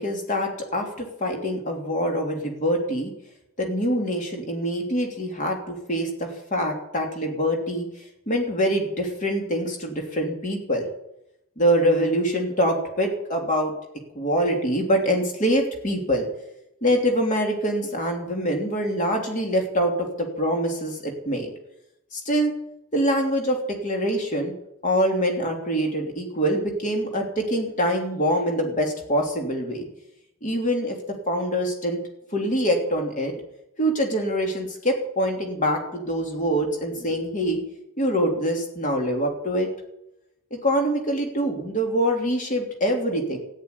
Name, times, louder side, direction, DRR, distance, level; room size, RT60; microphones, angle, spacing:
voice 1, 0.0-3.1 3.6-7.9 8.3-10.9 11.6-13.7 14.1-16.3 16.8-21.5 22.1-22.5 22.9-24.5 24.8-29.9 30.4-31.0 31.3-32.0 32.3-33.3 33.8-37.6 38.0-39.7 40.5-43.4, equal, 35° left, 2 dB, 3.1 m, -24 dB
14.0 x 8.8 x 9.8 m, 0.83 s
head